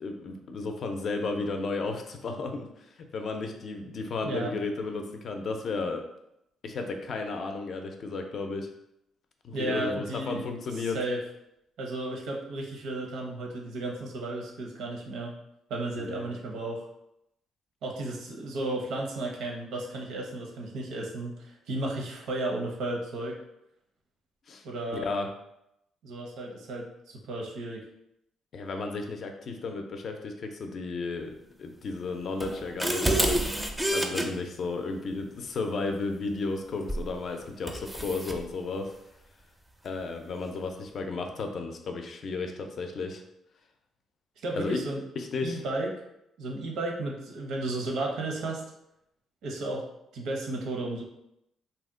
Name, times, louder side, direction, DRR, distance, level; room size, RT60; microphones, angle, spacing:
voice 1, 0.0-6.0 6.6-8.7 9.4-11.0 16.0-16.3 24.5-24.6 24.9-25.3 28.5-31.3 31.6-33.4 33.9-38.9 39.8-43.2 44.5-44.8 45.2-45.6, left 3 dB, 55° left, 5 dB, 0.4 m, -33 dB
voice 2, 4.2-4.5 9.5-10.5 10.8-11.2 11.8-15.3 15.7-16.9 17.8-23.4 24.6-25.1 26.0-27.8 34.1-34.3 44.4-45.0 45.4-45.9 46.4-48.6 49.4-49.8 50.1-51.0, right 2 dB, 80° right, 0 dB, 0.7 m, -33 dB
sound 1, 32.4-34.3 36.9-37.1 37.7-38.4, right 1 dB, 5° right, 0.4 m, -28 dB
2.7 x 2.1 x 3.6 m, 0.82 s
cardioid pair, 90°, 0 cm